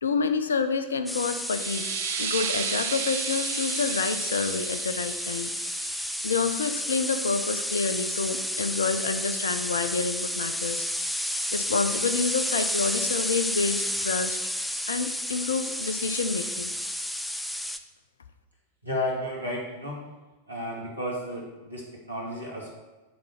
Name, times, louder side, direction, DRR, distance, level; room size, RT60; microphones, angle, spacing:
voice 1, 0.0-1.9 2.2-5.5 6.2-10.9 11.5-14.4 14.9-16.8, left 4 dB, 70° left, 10 dB, 0.5 m, -28 dB
sound 1, 1.1-17.8, left 1 dB, 5° left, 0.4 m, -31 dB
sound 2, 1.4-6.8, right 9 dB, 60° right, 0.5 m, -35 dB
voice 2, 18.8-20.0 20.5-22.7, left 1 dB, 90° right, -4 dB, 2.0 m, -32 dB
9.6 x 4.0 x 4.4 m, 1.2 s
figure-of-eight pair, 90°, 0 cm